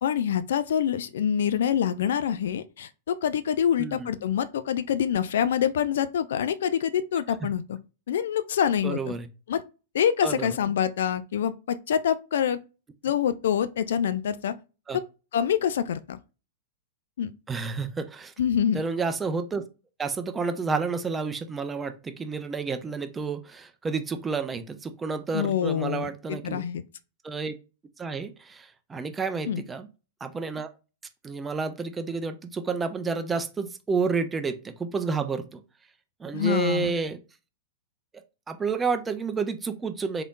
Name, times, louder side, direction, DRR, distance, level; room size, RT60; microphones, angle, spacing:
voice 1, 0.0-7.8 8.1-9.1 9.5-9.6 9.9-12.6 13.0-14.5 14.9-15.0 15.3-16.2 17.2-17.3 18.4-18.8 25.3-26.8 29.5-29.6 36.3-36.9, left 9 dB, 60° left, 0.3 m, -26 dB
voice 2, 3.8-4.1 8.8-9.3 10.2-10.6 14.9-15.0 17.5-18.3 18.7-19.6 20.0-26.6 27.2-27.5 28.0-29.9 30.2-30.7 31.2-35.6 36.2-37.2 38.5-40.2, right 4 dB, 15° right, 0.5 m, -30 dB
3.7 x 3.4 x 2.2 m
figure-of-eight pair, 95°, 0 cm